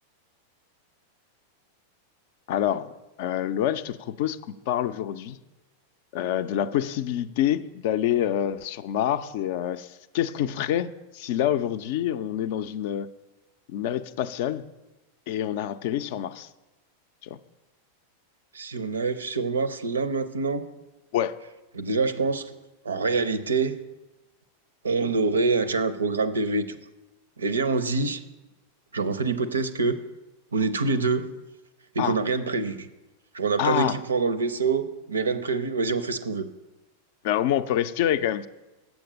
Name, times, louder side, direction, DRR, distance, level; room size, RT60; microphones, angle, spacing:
voice 1, 2.5-2.9 3.2-5.4 6.1-13.1 13.7-14.7 15.3-16.5 17.2-17.4 21.1-21.3 32.0-32.2 33.6-34.0 37.2-38.5, left 11 dB, 50° left, 13 dB, 0.4 m, -27 dB
voice 2, 18.5-20.6 21.7-22.5 22.8-23.7 24.8-26.8 27.4-28.2 28.9-30.0 30.5-31.4 31.9-32.9 33.3-36.5, right 4 dB, 70° right, 13 dB, 0.5 m, -25 dB
7.7 x 7.1 x 5.2 m, 1.1 s
figure-of-eight pair, 90°, 0 cm